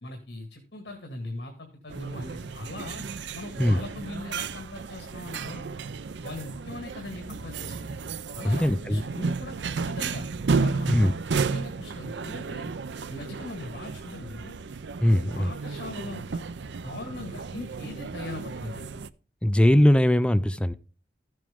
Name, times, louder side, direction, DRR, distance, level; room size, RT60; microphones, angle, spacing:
voice 1, 0.0-3.0 3.3-5.6 6.2-7.9 8.3-10.3 10.6-12.7 13.1-14.6 15.3-16.4 16.8-19.0, left 2 dB, 65° left, 1.9 m, -40 dB
sound 1, 1.9-19.1, right 4 dB, 80° right, 0.5 m, -33 dB
voice 2, 8.4-9.0 10.9-11.1 15.0-15.5 19.4-20.8, left 1 dB, 5° left, 0.4 m, -20 dB
14.0 x 7.6 x 3.6 m
head